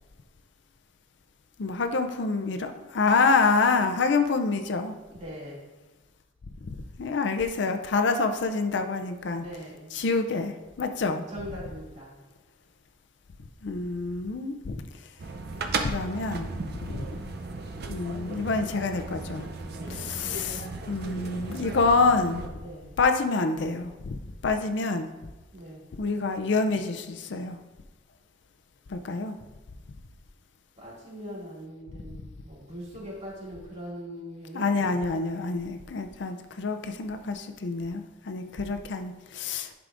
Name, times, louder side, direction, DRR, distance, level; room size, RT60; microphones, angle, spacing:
voice 1, 1.6-4.9 6.7-9.5 9.9-11.3 13.6-14.8 15.8-16.5 16.8-17.0 17.9-19.5 19.9-22.5 23.0-25.1 26.0-27.6 28.9-29.4 34.5-39.7, left 4 dB, 60° left, 7 dB, 0.5 m, -27 dB
voice 2, 5.1-5.6 9.3-9.9 11.3-12.2 16.8-17.1 19.6-20.1 22.6-23.0 25.5-25.9 30.8-35.3 38.5-38.7, equal, 35° right, -6 dB, 2.3 m, -41 dB
sound 1, 15.2-22.5, right 3 dB, 55° right, 0.6 m, -36 dB
11.0 x 4.7 x 2.5 m, 1.1 s
head